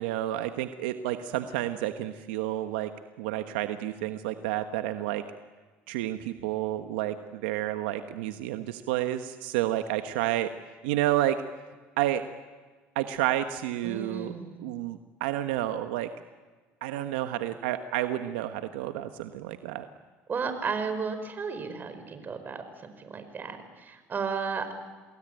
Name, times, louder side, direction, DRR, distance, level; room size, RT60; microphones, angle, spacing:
voice 1, 0.0-2.9 3.2-5.2 5.9-10.5 10.8-11.4 12.0-12.2 12.9-14.3 14.6-16.1 16.8-19.9, right 13 dB, 90° right, 8 dB, 1.2 m, -30 dB
voice 2, 13.8-14.6 20.3-24.7, right 5 dB, 35° right, 9 dB, 5.1 m, -34 dB
28.5 x 21.0 x 9.2 m, 1.4 s
supercardioid pair, 90°, 5 cm